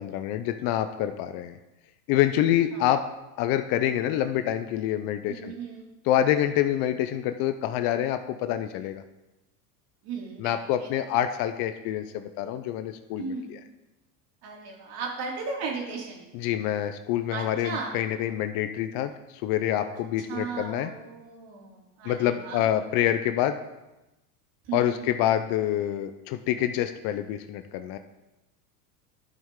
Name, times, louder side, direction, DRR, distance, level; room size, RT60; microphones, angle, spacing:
voice 1, 0.0-1.6 2.1-3.0 3.4-5.5 6.1-9.0 10.4-13.6 16.3-19.1 19.4-20.9 22.0-23.6 24.7-28.0, left 11 dB, 45° left, 9 dB, 0.6 m, -26 dB
voice 2, 5.3-5.9 10.0-11.1 13.2-13.5 14.4-16.3 17.3-17.9 20.3-22.7 24.6-25.0, right 5 dB, 50° right, -1 dB, 2.7 m, -36 dB
12.5 x 5.5 x 3.7 m, 1.0 s
supercardioid pair, 125°, 48 cm